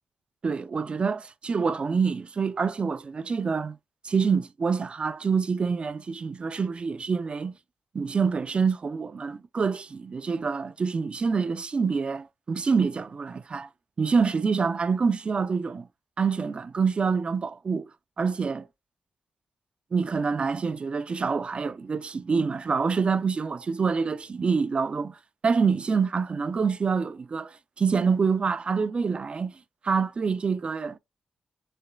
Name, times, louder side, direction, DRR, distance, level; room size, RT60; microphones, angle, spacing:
voice 1, 0.4-3.8 4.0-7.5 7.9-13.7 14.0-15.9 16.2-17.9 18.2-18.7 19.9-25.2 25.4-29.5 29.8-31.0, right 5 dB, 40° right, 0.4 m, -26 dB
6.7 x 3.1 x 2.3 m
cardioid pair, 85°, 3 cm